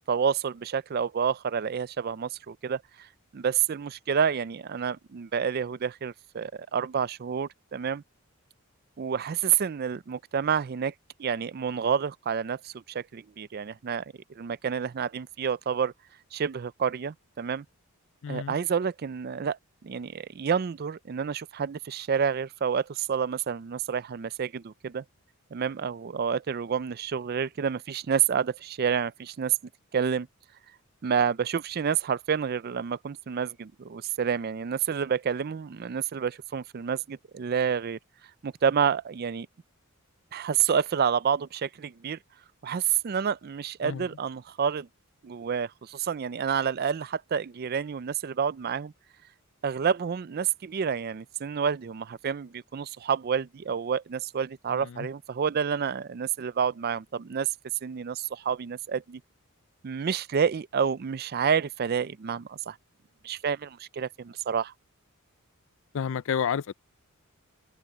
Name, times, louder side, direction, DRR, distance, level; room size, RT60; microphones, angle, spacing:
voice 1, 0.1-3.1 3.3-8.0 9.0-10.9 11.2-15.9 16.3-17.6 18.3-19.6 19.8-25.0 25.5-29.6 29.9-30.3 31.0-38.0 38.4-39.5 40.3-42.2 42.6-44.9 45.2-48.9 49.6-57.5 57.8-59.2 59.8-62.8 63.2-64.7, right 7 dB, 45° right, 0.4 m, -29 dB
voice 2, 18.2-18.6 43.8-44.1 54.7-55.1 65.9-66.7, left 7 dB, 60° left, 0.4 m, -30 dB
head